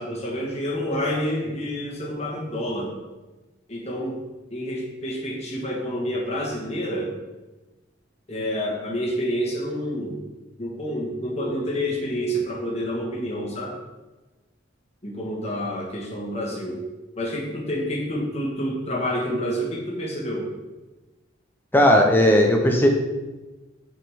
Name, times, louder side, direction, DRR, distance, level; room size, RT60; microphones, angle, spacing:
voice 1, 0.0-2.9 3.7-4.2 4.5-7.1 8.3-10.2 10.6-13.7 15.0-16.8 17.2-20.4, equal, 35° left, -3 dB, 1.4 m, -28 dB
voice 2, 21.7-22.9, left 1 dB, 10° left, 2 dB, 0.7 m, -16 dB
6.1 x 4.9 x 3.6 m, 1.1 s
head